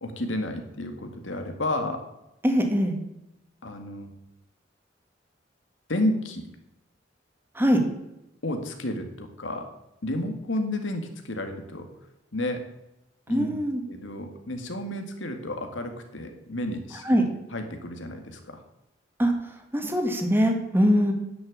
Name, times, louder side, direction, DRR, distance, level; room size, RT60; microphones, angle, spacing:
voice 1, 0.0-2.0 3.6-4.1 5.9-6.4 8.4-9.7 10.0-11.9 12.3-12.6 13.3-13.5 13.9-17.2 17.5-18.6, left 1 dB, 90° left, 5 dB, 2.0 m, -31 dB
voice 2, 2.4-2.9 7.6-7.8 13.3-13.8 17.1-17.2 19.2-19.3 19.7-21.1, equal, 10° right, 4 dB, 1.8 m, -22 dB
10.5 x 6.5 x 8.6 m, 0.90 s
head